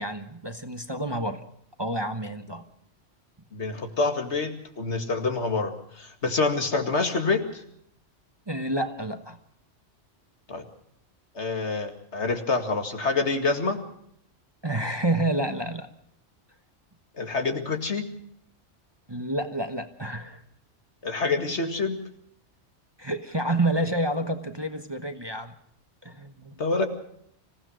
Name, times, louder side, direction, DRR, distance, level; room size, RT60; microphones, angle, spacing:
voice 1, 0.0-1.4 1.8-2.6 8.5-9.4 14.6-15.9 19.1-20.4 23.0-25.5 26.0-26.6, right 1 dB, 20° right, 7 dB, 1.1 m, -29 dB
voice 2, 3.5-7.6 10.5-10.6 11.3-13.8 17.2-18.1 21.0-22.0 26.6-26.9, left 3 dB, 70° left, 5 dB, 2.4 m, -27 dB
26.0 x 16.0 x 6.3 m, 0.70 s
omnidirectional pair, 1.2 m